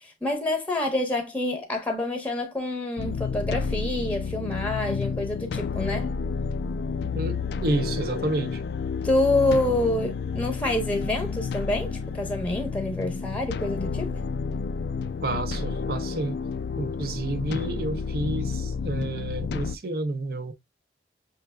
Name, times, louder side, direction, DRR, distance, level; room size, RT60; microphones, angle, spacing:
voice 1, 0.0-6.1 9.0-14.1, left 2 dB, 10° left, 0.8 m, -27 dB
sound 1, 3.0-19.8, left 5 dB, 65° left, 0.3 m, -30 dB
voice 2, 7.1-8.6 15.2-16.4 16.8-20.5, right 2 dB, 55° right, 0.6 m, -30 dB
5.7 x 3.3 x 2.2 m
head